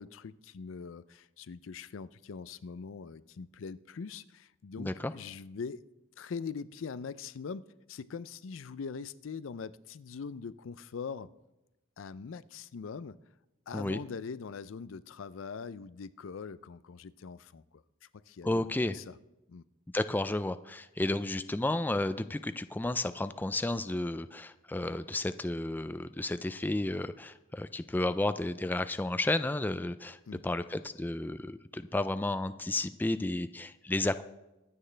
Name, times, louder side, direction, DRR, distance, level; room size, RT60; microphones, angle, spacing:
voice 1, 0.0-5.8 6.2-11.3 12.0-13.2 13.7-19.2 19.5-19.6 30.3-30.4, left 5 dB, 75° left, 17 dB, 0.5 m, -42 dB
voice 2, 4.8-5.1 13.7-14.0 18.4-19.0 19.9-34.2, left 2 dB, 10° left, 11 dB, 0.3 m, -32 dB
24.0 x 8.8 x 3.3 m, 0.98 s
head